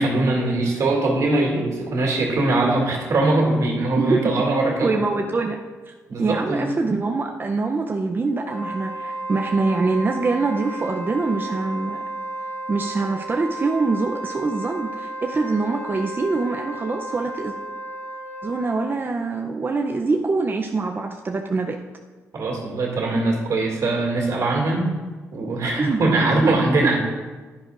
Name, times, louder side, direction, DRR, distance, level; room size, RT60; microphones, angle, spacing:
voice 1, 0.0-4.9 6.1-6.7 22.3-24.9 25.3-27.0, right 2 dB, 70° right, 0 dB, 2.3 m, -21 dB
voice 2, 4.8-5.6 6.2-12.0 12.7-17.5 18.4-21.8 25.8-26.0 26.4-26.5, right 3 dB, 35° right, 2 dB, 0.6 m, -24 dB
Wind instrument woodwind instrument, 8.4-19.0, right 2 dB, 80° left, 3.2 m, -33 dB
10.5 x 10.5 x 2.5 m, 1.3 s
cardioid pair, 75°, 6 cm